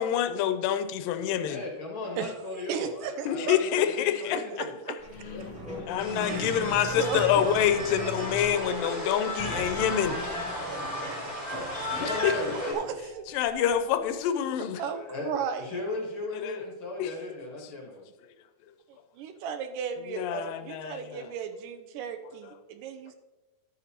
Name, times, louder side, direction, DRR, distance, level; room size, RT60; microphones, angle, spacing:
voice 1, 0.0-1.6 3.3-5.0 5.9-10.2 12.0-12.4 13.3-14.8 16.3-16.6 17.0-17.1 20.0-21.3 22.4-22.6, left 9 dB, 85° left, 10 dB, 2.3 m, -27 dB
voice 2, 1.5-4.7 5.3-5.8 11.5-12.9 14.8-18.0, left 2 dB, 50° left, -1 dB, 1.8 m, -37 dB
voice 3, 2.7-3.6 6.2-6.6 7.0-7.6 10.6-11.3 11.9-12.0 12.5-13.5 14.8-15.7 19.2-23.2, right 7 dB, 80° right, 8 dB, 2.2 m, -35 dB
sound 1, 5.0-14.1, equal, ahead, 1.9 m, -40 dB
sound 2, 6.0-12.7, left 1 dB, 15° left, 2.4 m, -35 dB
11.5 x 9.0 x 2.9 m, 1.1 s
omnidirectional pair, 3.9 m